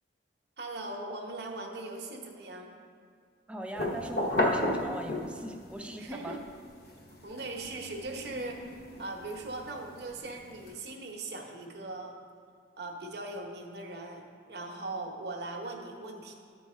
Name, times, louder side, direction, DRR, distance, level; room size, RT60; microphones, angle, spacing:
voice 1, 0.6-2.8 6.0-6.4 7.2-12.2 12.8-16.3, right 2 dB, 60° right, 1 dB, 1.0 m, -40 dB
voice 2, 3.5-6.4, right 1 dB, 5° right, 3 dB, 0.5 m, -40 dB
sound 1, 3.7-5.6 6.1-10.7, left 1 dB, 55° left, 1.2 m, -34 dB
12.5 x 4.7 x 4.3 m, 2.2 s
head